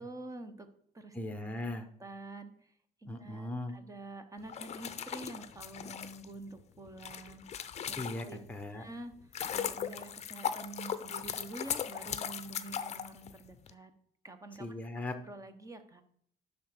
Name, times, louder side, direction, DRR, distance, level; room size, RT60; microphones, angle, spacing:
voice 1, 0.0-1.1 2.0-2.7 3.0-8.4 8.7-13.9 14.2-14.7 15.2-16.0, right 2 dB, 20° right, 9 dB, 1.0 m, -47 dB
voice 2, 1.1-1.9 3.1-3.7 8.0-8.8 14.6-15.1, left 1 dB, 10° left, 7 dB, 1.0 m, -38 dB
sound 1, 4.4-8.5 9.0-13.7, left 8 dB, 40° left, 0.6 m, -38 dB
10.0 x 3.6 x 6.7 m, 0.65 s
cardioid pair, 110°, 17 cm